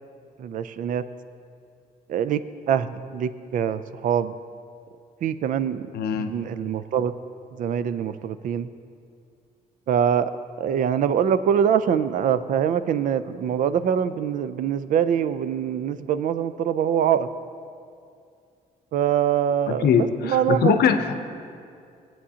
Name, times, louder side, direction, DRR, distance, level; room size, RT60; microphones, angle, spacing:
voice 1, 0.4-1.0 2.1-2.4 2.7-4.3 5.2-5.9 6.2-7.1 7.5-8.7 9.9-10.3 10.6-17.3 18.9-19.9 20.2-20.8, right 8 dB, 55° right, 13 dB, 0.4 m, -24 dB
voice 2, 5.9-6.3 19.7-21.2, left 7 dB, 85° left, 7 dB, 0.7 m, -22 dB
19.0 x 8.6 x 2.8 m, 2.4 s
cardioid pair, 175°, 16 cm